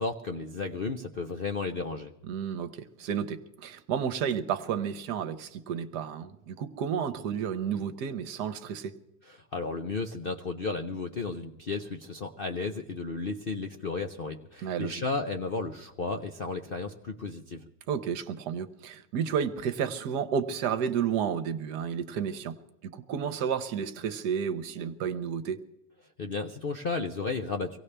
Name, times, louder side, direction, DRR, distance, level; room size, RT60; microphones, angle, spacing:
voice 1, 0.0-2.1 9.2-17.6 26.2-27.8, left 4 dB, 55° left, 0.6 m, -33 dB
voice 2, 2.3-9.0 14.6-15.0 17.9-22.6 22.8-25.6, right 7 dB, 70° right, 1.3 m, -31 dB
24.5 x 17.5 x 3.3 m
omnidirectional pair, 1.9 m